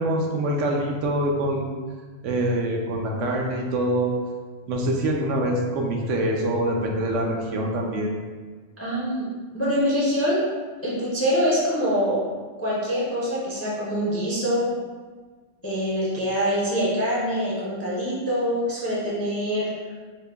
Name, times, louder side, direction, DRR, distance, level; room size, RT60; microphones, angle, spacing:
voice 1, 0.0-1.7 2.2-4.1 4.7-8.1, right 1 dB, 75° right, 0 dB, 0.9 m, -25 dB
voice 2, 8.8-9.3 9.5-10.5 10.8-12.2 12.6-14.7 15.6-19.7, equal, 20° left, -7 dB, 0.4 m, -24 dB
3.7 x 2.1 x 3.3 m, 1.4 s
omnidirectional pair, 1.3 m